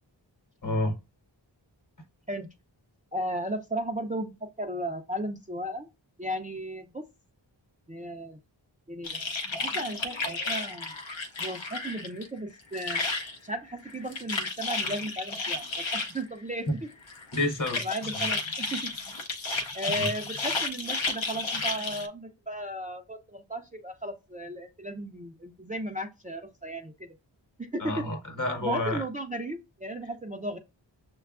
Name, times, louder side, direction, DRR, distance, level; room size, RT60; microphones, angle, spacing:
voice 1, 0.6-1.0 17.3-17.8 18.1-18.3 20.0-20.1 27.8-29.0, left 1 dB, 40° left, 1.0 m, -29 dB
voice 2, 3.1-5.9 6.2-7.0 7.9-8.4 8.9-9.2 9.6-10.9 11.4-13.0 13.4-16.7 17.8-18.9 19.7-27.2 27.6-28.1 28.6-30.6, right 1 dB, 20° right, 0.4 m, -35 dB
sound 1, 9.0-12.3 12.5-13.4 13.8-16.2 17.1-22.1, left 3 dB, 75° left, 0.7 m, -32 dB
6.3 x 2.3 x 2.3 m
wide cardioid pair, 50°, 46 cm